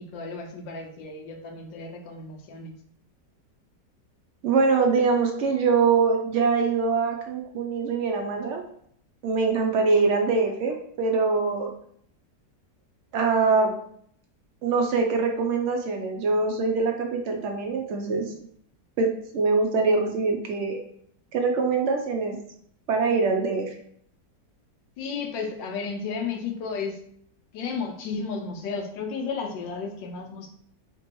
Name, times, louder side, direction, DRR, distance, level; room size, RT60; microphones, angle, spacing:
voice 1, 0.0-2.8 25.0-27.0 27.5-30.5, left 5 dB, 90° left, 4 dB, 1.4 m, -33 dB
voice 2, 4.4-8.6 9.2-11.7 13.1-13.7 14.6-18.3 19.0-20.8 21.3-22.4 22.9-23.7, right 4 dB, 90° right, 2 dB, 0.6 m, -23 dB
3.4 x 3.0 x 4.5 m, 0.65 s
omnidirectional pair, 1.9 m